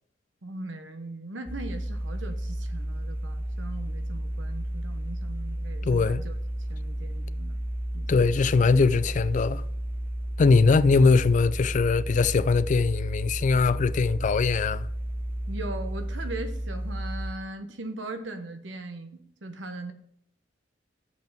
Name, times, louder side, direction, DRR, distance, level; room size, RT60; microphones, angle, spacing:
voice 1, 0.4-6.4 6.7-7.6 7.9-8.3 15.5-19.9, right 2 dB, 85° right, 1.0 m, -39 dB
sound 1, 1.5-17.3, right 1 dB, 10° right, 0.6 m, -32 dB
voice 2, 5.8-6.2 8.1-9.6 10.4-14.9, left 4 dB, 40° left, 0.3 m, -21 dB
6.9 x 5.4 x 6.0 m
head